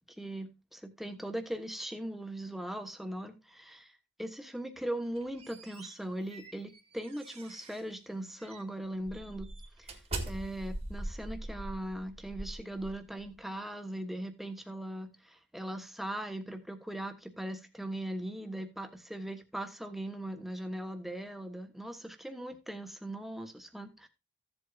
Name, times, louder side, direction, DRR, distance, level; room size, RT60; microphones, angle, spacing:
voice 1, 0.2-3.9 4.2-9.5 9.8-10.0 10.3-24.1, right 1 dB, ahead, 1.2 m, -39 dB
sound 1, 5.0-7.9 8.4-8.6 9.1-13.3, right 2 dB, 35° right, 1.7 m, -42 dB
15.0 x 7.9 x 2.4 m
head